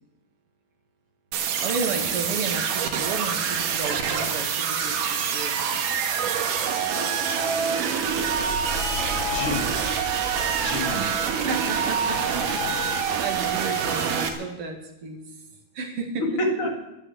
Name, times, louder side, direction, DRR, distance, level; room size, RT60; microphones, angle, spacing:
sound 1, 1.3-14.3, right 6 dB, 90° right, 3.0 m, -26 dB
voice 1, 1.6-5.8 10.9-15.2 15.7-16.2, right 4 dB, 50° right, 3 dB, 2.8 m, -33 dB
sound 2, 8.0-14.0, left 2 dB, 85° left, 4.5 m, -39 dB
voice 2, 8.8-9.7 10.6-11.0 13.8-13.9 16.2-16.7, left 1 dB, 45° left, 2 dB, 2.7 m, -29 dB
13.0 x 11.5 x 8.2 m, 0.93 s
omnidirectional pair, 3.6 m